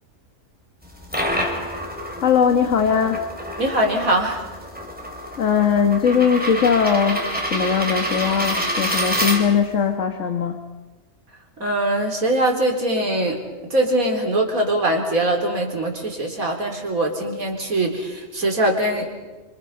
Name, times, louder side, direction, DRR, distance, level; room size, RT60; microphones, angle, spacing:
sound 1, 0.8-9.8, equal, 5° right, 3.9 m, -27 dB
voice 1, 2.2-3.2 5.3-10.6, left 7 dB, 65° left, 5 dB, 1.9 m, -20 dB
voice 2, 3.6-4.4 11.6-13.4 13.7-19.1, right 1 dB, 85° right, 1 dB, 4.5 m, -22 dB
30.0 x 26.0 x 5.7 m, 1.2 s
omnidirectional pair, 1.4 m